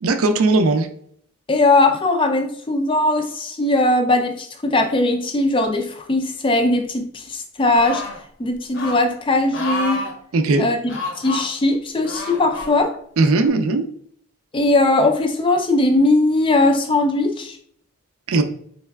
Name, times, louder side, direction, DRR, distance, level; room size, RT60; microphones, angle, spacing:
voice 1, 0.0-0.9 10.3-10.7 13.2-13.9 18.3-18.4, right 3 dB, 70° right, 8 dB, 0.4 m, -17 dB
voice 2, 1.5-8.0 8.4-10.0 10.6-10.8 11.2-12.9 14.5-17.6, left 2 dB, 20° left, 6 dB, 0.4 m, -19 dB
sound 1, 7.7-8.2 8.7-9.0 9.5-10.1 10.9-11.5 12.0-12.7 13.5-13.6, left 2 dB, 55° left, 0.8 m, -28 dB
4.6 x 3.1 x 2.3 m, 0.64 s
head